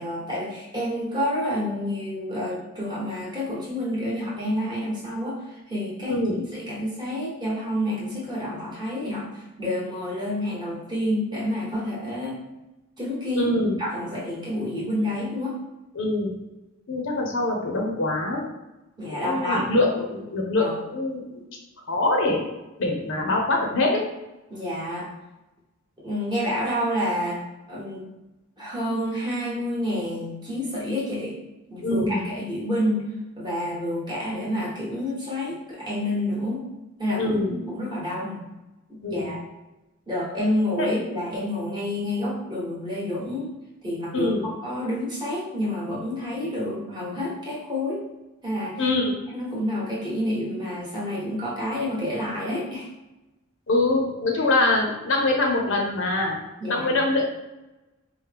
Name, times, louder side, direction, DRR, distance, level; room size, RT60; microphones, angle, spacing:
voice 1, 0.0-5.4 5.7-12.4 13.0-13.5 13.8-15.6 19.0-19.6 20.6-20.7 24.5-25.1 26.0-27.4 27.7-28.0 28.6-31.3 31.7-33.0 33.4-36.6 37.0-37.4 37.7-38.4 38.9-39.4 40.1-43.5 43.8-48.0 48.4-48.8 49.3-52.9 56.6-57.0, left 1 dB, 20° right, -6 dB, 1.0 m, -28 dB
voice 2, 6.1-6.4 13.4-13.7 15.9-16.3 16.9-18.4 19.1-21.4 21.9-22.5 22.8-24.0 31.8-32.2 37.2-37.6 39.0-39.3 40.8-40.9 44.1-44.5 48.8-49.1 53.7-56.4 56.7-57.2, left 2 dB, 60° left, 0 dB, 0.7 m, -24 dB
4.5 x 2.1 x 3.3 m, 1.0 s
head